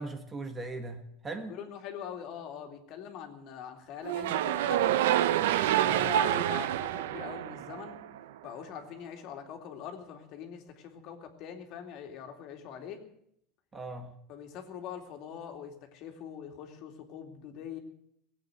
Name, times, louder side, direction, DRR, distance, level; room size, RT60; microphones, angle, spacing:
voice 1, 0.0-1.6 5.8-6.2 13.7-14.1, right 3 dB, 20° right, 1.5 m, -39 dB
voice 2, 1.5-4.9 5.7-8.0 8.4-13.0 14.3-17.8, left 8 dB, 50° left, 2.6 m, -43 dB
sound 1, 4.0-8.2, right 12 dB, 85° right, 0.8 m, -27 dB
17.5 x 8.4 x 9.0 m
supercardioid pair, 140°, 0 cm